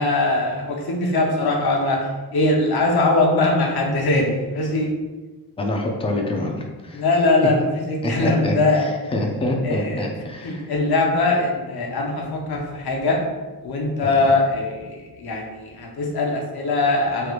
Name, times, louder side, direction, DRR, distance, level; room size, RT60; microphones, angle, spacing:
voice 1, 0.0-4.9 6.9-8.9 9.6-10.0 10.4-13.2 13.6-17.3, left 2 dB, 65° left, 0 dB, 0.7 m, -21 dB
voice 2, 5.6-7.0 8.0-10.7 11.3-11.4 14.0-14.2, left 1 dB, 15° left, 1 dB, 0.4 m, -26 dB
3.2 x 3.0 x 2.4 m, 1.3 s
wide cardioid pair, 105°, 41 cm